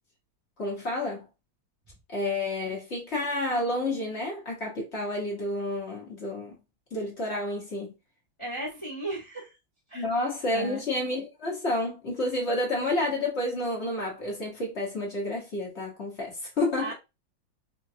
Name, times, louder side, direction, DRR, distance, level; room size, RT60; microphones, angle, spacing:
voice 1, 0.6-1.3 2.1-6.5 6.9-7.9 9.9-16.9, left 1 dB, 40° left, 1.0 m, -30 dB
voice 2, 8.4-9.6 9.9-10.0 10.4-10.8 16.8-16.9, right 2 dB, 20° left, 0.9 m, -35 dB
5.1 x 2.3 x 2.7 m
omnidirectional pair, 2.4 m